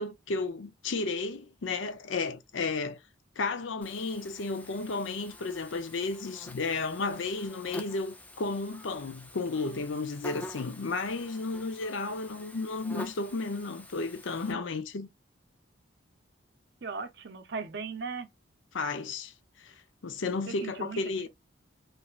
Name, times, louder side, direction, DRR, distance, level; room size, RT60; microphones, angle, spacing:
voice 1, 0.0-3.0 3.4-15.1 18.7-19.7 20.0-21.3, left 3 dB, 75° left, 0.5 m, -33 dB
Buzz, 3.8-14.5, left 1 dB, 10° left, 0.3 m, -47 dB
voice 2, 16.8-18.3 20.5-21.3, right 4 dB, 55° right, 0.6 m, -38 dB
3.2 x 2.6 x 2.4 m
head